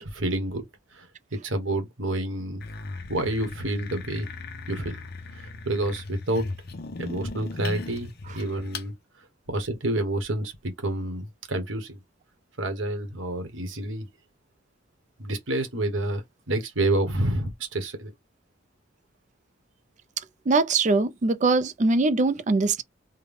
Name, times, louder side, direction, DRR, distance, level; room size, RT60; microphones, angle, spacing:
voice 1, 0.0-0.6 0.9-2.6 3.1-4.3 4.7-5.0 5.3-6.5 7.0-8.1 8.3-8.9 9.5-12.0 12.6-14.0 15.2-18.1, right 1 dB, 90° right, 1.2 m, -28 dB
sound 1, 2.6-8.9, left 3 dB, 55° left, 0.7 m, -38 dB
voice 2, 20.5-22.8, right 3 dB, 40° right, 0.4 m, -22 dB
3.7 x 2.2 x 3.5 m
head